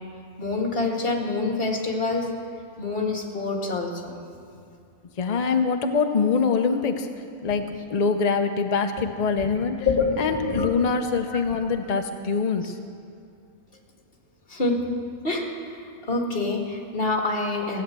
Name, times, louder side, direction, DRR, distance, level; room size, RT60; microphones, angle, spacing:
voice 1, 0.4-2.2 2.8-4.2 9.8-10.7 14.5-14.8 15.2-15.5 16.1-17.8, left 3 dB, 35° left, 0 dB, 2.1 m, -26 dB
voice 2, 5.2-7.1 7.4-9.9 10.2-12.7, left 5 dB, 60° left, 6 dB, 0.4 m, -24 dB
16.5 x 9.3 x 7.6 m, 2.4 s
omnidirectional pair, 1.7 m